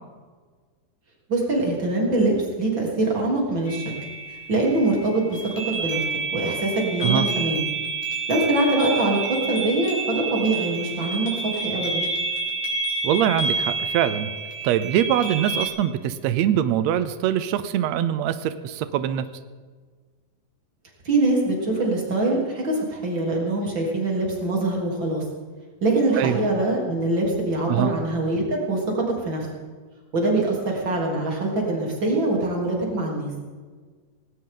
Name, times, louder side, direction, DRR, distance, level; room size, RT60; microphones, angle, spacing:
voice 1, 1.3-3.8 4.5-5.4 5.7-6.0 6.3-7.7 8.3-12.0 21.0-25.2 25.8-29.5 30.1-33.3, right 2 dB, 35° right, -2 dB, 4.0 m, -23 dB
sound 1, 3.7-15.7, right 3 dB, 75° left, 4.7 m, -29 dB
voice 2, 13.0-14.3 14.6-19.2 26.2-26.4 27.7-27.9, right 10 dB, 90° right, 12 dB, 1.5 m, -23 dB
18.5 x 18.0 x 3.9 m, 1.5 s
omnidirectional pair, 4.0 m